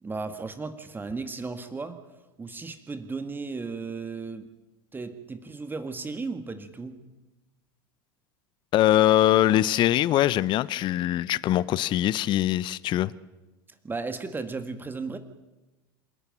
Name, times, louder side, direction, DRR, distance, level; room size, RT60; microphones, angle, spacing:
voice 1, 0.0-2.0 2.4-4.5 4.9-7.1 13.8-15.2, right 4 dB, 15° right, 1.8 m, -35 dB
voice 2, 8.7-13.1, left 13 dB, 40° left, 0.7 m, -22 dB
27.0 x 12.5 x 9.2 m
figure-of-eight pair, 80°, 12 cm